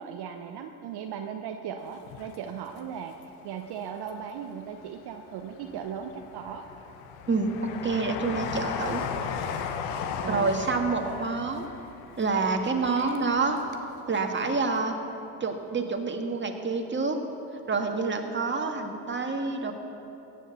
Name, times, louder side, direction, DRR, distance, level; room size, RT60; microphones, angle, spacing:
voice 1, 0.0-3.1 3.4-6.6 10.2-10.5 10.9-11.2 12.9-13.3, right 8 dB, 50° right, 4 dB, 0.9 m, -37 dB
Train, 1.9-3.2 3.6-4.6 5.1-13.9 14.1-14.2, left 7 dB, 65° left, 1.1 m, -36 dB
voice 2, 7.3-9.0 10.3-11.7 12.2-13.6 14.1-15.0 15.4-17.2 17.7-19.7, right 4 dB, 20° right, 3 dB, 1.8 m, -27 dB
17.0 x 7.4 x 6.9 m, 2.9 s
hypercardioid pair, 65°, 49 cm